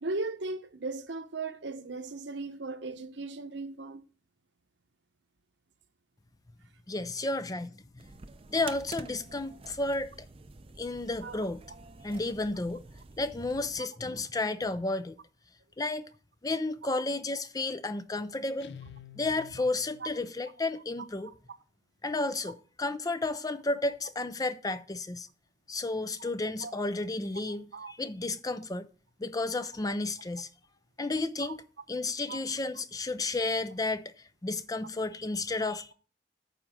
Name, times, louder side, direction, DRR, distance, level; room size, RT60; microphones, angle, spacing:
voice 1, 0.0-4.0 11.2-11.4 21.2-21.3 26.6-26.7 27.5-27.9 31.4-31.5 32.3-32.4 35.6-35.7, right 3 dB, 75° right, 1.0 m, -37 dB
voice 2, 6.9-8.0 8.5-10.3 10.8-11.6 12.0-12.9 13.2-15.2 15.8-16.1 16.4-18.7 19.2-21.3 22.0-25.3 25.7-28.9 29.2-30.5 31.0-31.6 31.9-35.9, left 2 dB, 20° left, 0.5 m, -32 dB
sound 1, 8.0-13.9, right 3 dB, 30° right, 0.5 m, -48 dB
Guitar, 18.6-20.3, left 8 dB, 65° left, 0.6 m, -49 dB
9.3 x 5.1 x 7.3 m
head